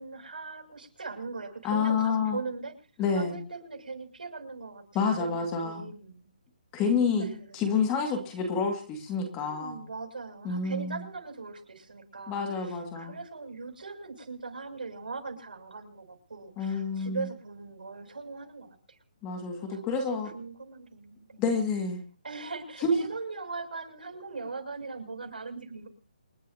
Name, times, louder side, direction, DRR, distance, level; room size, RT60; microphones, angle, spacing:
voice 1, 0.0-2.7 3.1-4.8 5.2-6.3 7.2-7.7 9.4-19.0 19.7-21.4 22.2-25.9, right 4 dB, 90° right, 4 dB, 7.0 m, -40 dB
voice 2, 1.6-2.4 3.0-3.4 4.9-5.8 6.7-7.3 7.5-9.8 10.4-11.0 12.3-13.1 16.6-17.2 19.2-20.3 21.4-22.0 22.8-22.9, left 5 dB, 15° left, 4 dB, 2.1 m, -28 dB
28.5 x 11.0 x 2.8 m, 0.40 s
hypercardioid pair, 175°, 5 cm